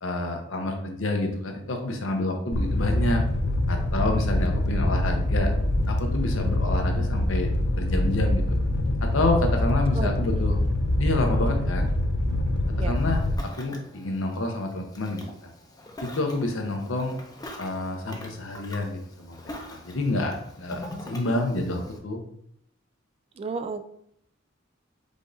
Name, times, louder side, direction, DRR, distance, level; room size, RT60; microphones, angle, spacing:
voice 1, 0.0-3.2 3.7-5.5 5.9-7.5 7.8-8.4 9.0-10.6 11.0-11.9 12.8-15.2 16.0-17.1 17.6-22.2, left 2 dB, 75° left, 3 dB, 0.9 m, -28 dB
Fire, 2.5-13.4, left 1 dB, 60° left, 0.5 m, -24 dB
Ocean, 13.0-22.0, left 1 dB, 20° left, 0.6 m, -44 dB
voice 2, 23.4-23.9, right 4 dB, 30° right, 10 dB, 0.3 m, -32 dB
5.1 x 2.6 x 3.9 m, 0.70 s
head